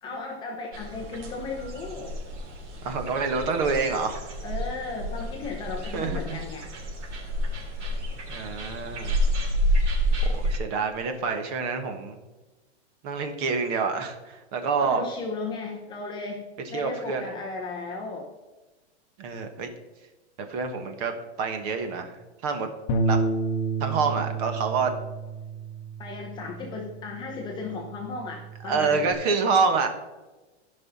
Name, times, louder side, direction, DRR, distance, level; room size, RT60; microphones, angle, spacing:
voice 1, 0.0-2.2 4.4-6.7 14.8-16.4 16.7-18.3 26.0-29.1, left 3 dB, 15° left, 0 dB, 0.6 m, -35 dB
sound 1, 0.7-10.6, equal, 90° right, 3.2 m, -29 dB
voice 2, 2.8-4.2 5.9-6.4 8.3-9.2 10.3-12.2 13.0-15.0 16.7-17.2 19.2-19.7 20.5-21.1 21.4-22.2 22.4-22.7 23.0-23.2 23.8-24.9 28.6-29.9, right 4 dB, 35° right, 6 dB, 1.2 m, -27 dB
Bass guitar, 22.9-29.1, right 3 dB, 35° left, 1.0 m, -31 dB
15.0 x 5.6 x 4.2 m, 1.2 s
supercardioid pair, 170°, 34 cm